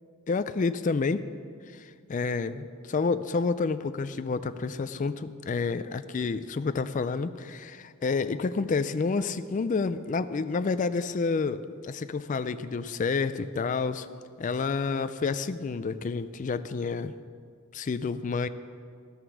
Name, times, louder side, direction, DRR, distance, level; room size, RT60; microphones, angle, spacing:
voice 1, 0.3-1.3 1.7-14.1 14.4-17.1 17.7-18.5, left 4 dB, 35° left, 12 dB, 0.3 m, -29 dB
14.0 x 8.0 x 6.1 m, 2.1 s
head